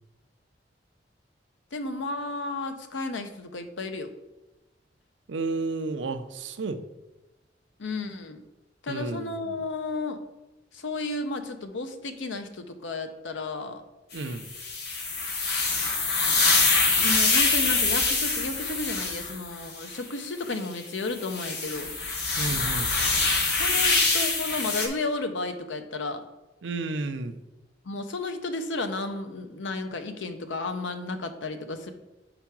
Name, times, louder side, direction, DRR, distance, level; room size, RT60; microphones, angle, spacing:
voice 1, 1.7-4.1 7.8-8.4 8.8-10.2 10.7-13.8 16.9-21.9 23.5-26.2 27.8-31.9, left 3 dB, 90° left, 8 dB, 0.7 m, -33 dB
voice 2, 5.3-6.8 8.9-9.6 14.1-14.4 22.4-22.9 26.6-27.4, right 3 dB, 85° right, 9 dB, 0.6 m, -32 dB
sound 1, 14.1-20.0 20.6-20.7 21.1-24.9, left 3 dB, 60° left, 1.2 m, -25 dB
5.0 x 4.6 x 5.9 m, 1.0 s
head